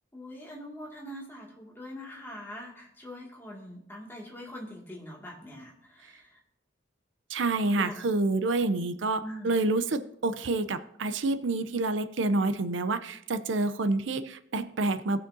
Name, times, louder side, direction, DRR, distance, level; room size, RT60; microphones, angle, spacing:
voice 1, 0.1-6.4 7.8-8.0 9.2-9.6, equal, 10° left, -3 dB, 2.1 m, -43 dB
voice 2, 7.3-15.2, right 2 dB, 70° right, 12 dB, 0.6 m, -28 dB
18.5 x 6.3 x 2.7 m, 0.72 s
head